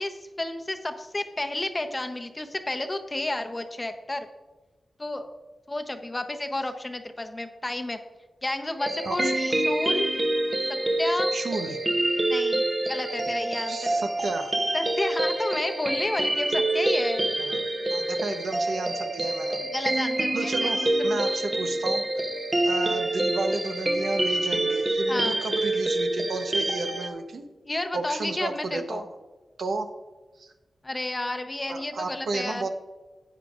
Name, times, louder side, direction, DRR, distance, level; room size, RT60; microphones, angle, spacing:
voice 1, 0.0-4.3 5.0-5.3 5.7-8.0 8.4-10.1 11.0-11.3 12.3-13.9 14.7-17.2 19.7-21.2 25.1-25.4 27.7-29.0 30.8-32.7, left 2 dB, 25° left, 6 dB, 0.8 m, -31 dB
sound 1, 8.8-27.1, right 1 dB, 30° right, 0.9 m, -26 dB
voice 2, 11.3-11.8 13.7-14.5 17.4-17.6 17.9-19.6 20.3-22.0 22.6-27.4 27.9-29.1 29.6-29.9 30.4-30.5 31.7-32.7, right 3 dB, 75° right, 6 dB, 0.9 m, -32 dB
12.5 x 8.8 x 2.5 m, 1.2 s
wide cardioid pair, 100°, 0 cm